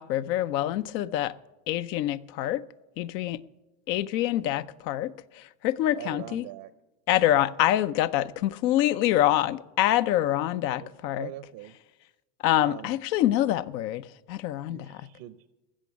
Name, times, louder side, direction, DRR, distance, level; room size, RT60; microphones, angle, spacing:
voice 1, 0.0-1.3 1.7-2.6 3.0-3.4 3.9-6.4 7.1-11.3 12.4-15.0, left 13 dB, 85° left, 0.7 m, -26 dB
voice 2, 5.9-6.7 7.1-7.4 10.8-11.8 12.6-13.0 14.7-15.5, right 15 dB, 70° right, 0.8 m, -42 dB
15.0 x 6.3 x 8.1 m
supercardioid pair, 90°, 49 cm